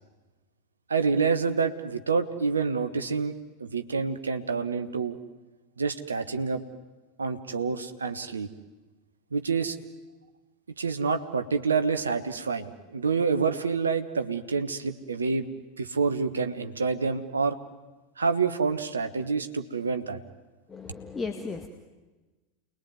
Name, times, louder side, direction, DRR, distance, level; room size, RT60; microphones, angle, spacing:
voice 1, 0.9-3.3 3.6-5.2 5.8-6.6 7.2-8.5 9.3-9.8 10.8-15.5 15.8-17.6 18.2-20.2, right 5 dB, 75° right, 8 dB, 1.4 m, -27 dB
voice 2, 20.7-21.7, left 4 dB, 15° left, 4 dB, 2.0 m, -35 dB
29.0 x 21.0 x 9.5 m, 1.2 s
figure-of-eight pair, 85°, 0 cm